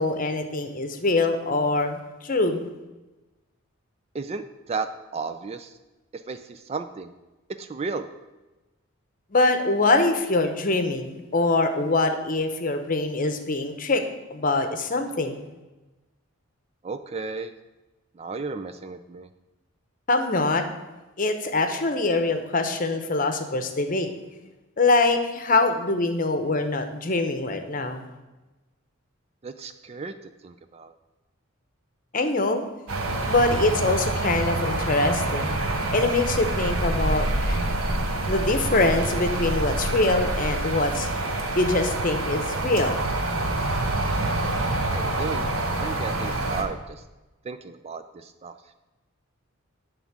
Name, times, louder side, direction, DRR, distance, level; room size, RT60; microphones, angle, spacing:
voice 1, 0.0-2.7 9.3-14.0 14.3-15.5 20.1-20.7 21.2-24.1 24.8-28.1 32.1-32.6 33.3-35.5 35.9-37.7 38.3-41.1 41.5-43.0, left 2 dB, 40° left, 7 dB, 0.8 m, -24 dB
voice 2, 4.1-4.9 5.1-5.7 6.1-7.1 7.6-8.1 16.8-17.5 18.2-19.3 29.4-30.1 30.4-30.9 44.9-45.4 45.8-47.0 47.4-48.5, right 4 dB, 30° right, 10 dB, 0.3 m, -34 dB
sound 1, 32.9-46.6, right 2 dB, 75° right, 1.2 m, -26 dB
10.5 x 3.6 x 7.3 m, 1.1 s
head